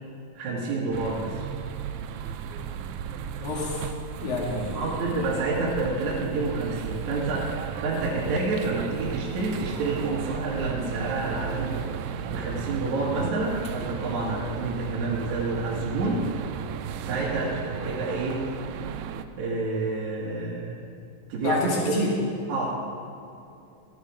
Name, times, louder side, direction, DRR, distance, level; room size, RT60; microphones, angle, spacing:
voice 1, 0.3-1.3 4.7-16.2 17.0-18.4 19.4-20.9 21.3-21.9 22.5-22.7, right 3 dB, 60° right, -5 dB, 3.1 m, -29 dB
sound 1, 0.9-19.3, right 8 dB, 85° right, 1.7 m, -34 dB
voice 2, 3.4-3.9 4.2-4.8 21.4-22.1, left 2 dB, 85° left, -4 dB, 3.9 m, -28 dB
13.5 x 11.5 x 4.9 m, 2.7 s
omnidirectional pair, 3.9 m